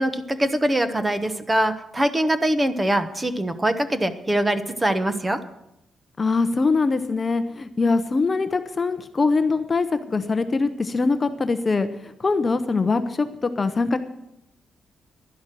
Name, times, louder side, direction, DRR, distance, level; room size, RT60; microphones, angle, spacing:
voice 1, 0.0-5.4, right 1 dB, 15° right, 11 dB, 0.9 m, -23 dB
voice 2, 6.2-14.0, left 3 dB, 25° left, 10 dB, 0.7 m, -23 dB
11.5 x 11.0 x 7.6 m, 0.85 s
cardioid pair, 145°, 0 cm